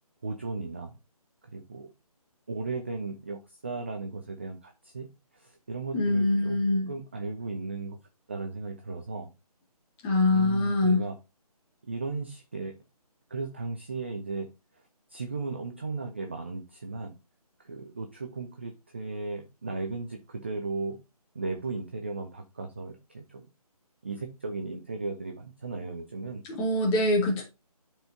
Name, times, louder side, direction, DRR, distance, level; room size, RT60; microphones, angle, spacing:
voice 1, 0.2-0.9 1.5-1.9 2.5-5.1 5.3-6.6 6.9-8.0 8.3-9.3 10.3-11.2 11.8-12.7 13.3-14.5 15.1-17.2 17.6-21.0 21.3-23.5 24.0-26.4, right 3 dB, 20° right, 0.4 m, -36 dB
voice 2, 5.9-6.9 10.0-11.0 26.4-27.4, left 2 dB, 15° left, 1.8 m, -24 dB
11.5 x 4.5 x 2.7 m
figure-of-eight pair, 150°, 20 cm